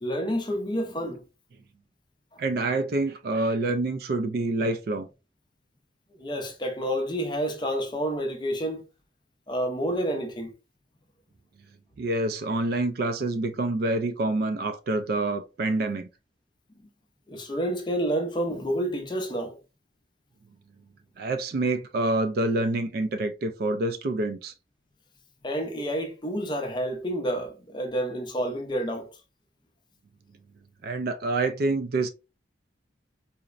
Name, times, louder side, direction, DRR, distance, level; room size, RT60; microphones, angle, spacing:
voice 1, 0.0-1.2 2.3-2.4 6.2-8.8 9.5-10.5 17.3-19.6 25.4-29.1, equal, 25° left, 0.5 m, -29 dB
voice 2, 2.4-5.1 12.0-16.1 21.2-24.5 30.8-32.1, right 2 dB, 55° right, 0.3 m, -27 dB
3.9 x 2.1 x 2.4 m
head